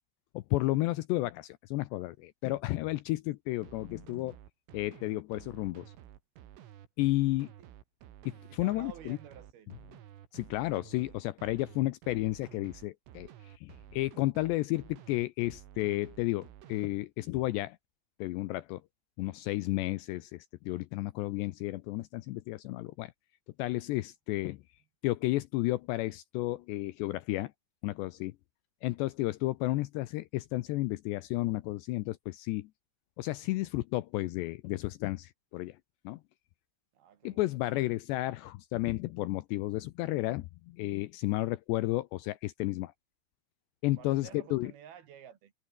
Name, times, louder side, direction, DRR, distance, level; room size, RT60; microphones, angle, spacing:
voice 1, 0.3-4.4 4.7-5.9 7.0-7.5 8.3-9.2 10.3-17.8 18.2-18.8 19.2-23.1 23.6-24.6 25.0-27.5 27.8-28.3 28.8-32.7 33.2-35.8 36.0-36.2 37.2-42.9 43.8-44.7, left 18 dB, 80° left, 2.6 m, -32 dB
sound 1, 3.6-16.9, right 11 dB, 90° right, 5.0 m, -52 dB
voice 2, 8.5-9.7 36.9-37.5 43.9-45.5, right 9 dB, 60° right, 3.5 m, -51 dB
omnidirectional pair, 5.6 m